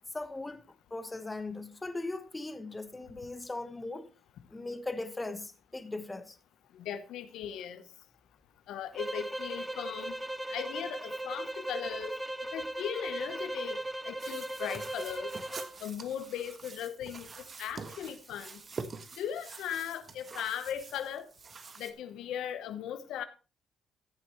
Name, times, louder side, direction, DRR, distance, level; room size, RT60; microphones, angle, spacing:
voice 1, 0.1-0.6 0.9-4.1 4.5-6.4, left 2 dB, 15° left, 1.2 m, -39 dB
voice 2, 6.7-7.8 8.7-10.2 10.5-12.2 12.5-13.8 14.0-15.3 15.8-17.3 17.6-18.6 19.2-21.3 21.8-23.2, left 9 dB, 85° left, 1.0 m, -38 dB
sound 1, 8.9-15.8, right 1 dB, 5° right, 1.0 m, -38 dB
sound 2, 14.2-21.9, right 4 dB, 40° right, 1.3 m, -46 dB
14.5 x 8.1 x 3.1 m
cardioid pair, 90°, 0 cm